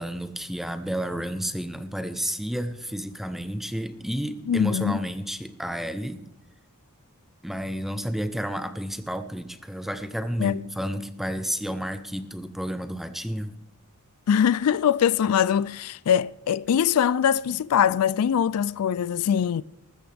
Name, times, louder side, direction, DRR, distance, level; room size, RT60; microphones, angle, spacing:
voice 1, 0.0-6.3 7.4-13.6, equal, ahead, 0.7 m, -31 dB
voice 2, 4.5-5.0 10.4-10.6 14.3-19.6, left 8 dB, 80° left, 0.4 m, -22 dB
20.0 x 13.0 x 3.4 m
head